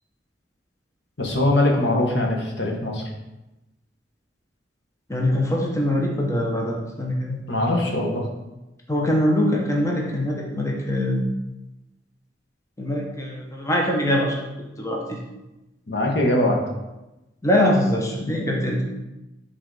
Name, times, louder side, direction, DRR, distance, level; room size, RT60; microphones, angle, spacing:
voice 1, 1.2-3.1 7.5-8.2 15.9-16.6, left 1 dB, 65° left, 0 dB, 1.2 m, -21 dB
voice 2, 5.1-7.4 8.9-11.2 12.8-14.5 14.8-15.2 17.4-18.8, left 1 dB, 15° left, -1 dB, 0.8 m, -23 dB
6.3 x 3.9 x 4.7 m, 1.0 s
head